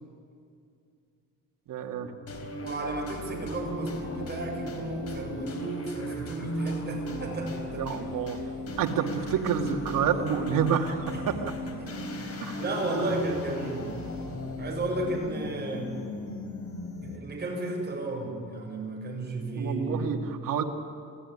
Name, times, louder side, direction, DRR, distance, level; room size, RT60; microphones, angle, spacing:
voice 1, 1.7-2.1 7.8-8.4 8.8-11.5 12.5-12.6 19.5-20.6, right 7 dB, 80° right, 3 dB, 2.4 m, -28 dB
sound 1, 2.3-17.4, left 1 dB, 50° left, 4.1 m, -37 dB
voice 2, 2.6-7.8 11.1-11.2 11.6-14.1 14.6-16.1 17.0-20.2, right 2 dB, 30° right, 0 dB, 7.2 m, -33 dB
27.5 x 17.0 x 10.0 m, 2.4 s
cardioid pair, 135°, 33 cm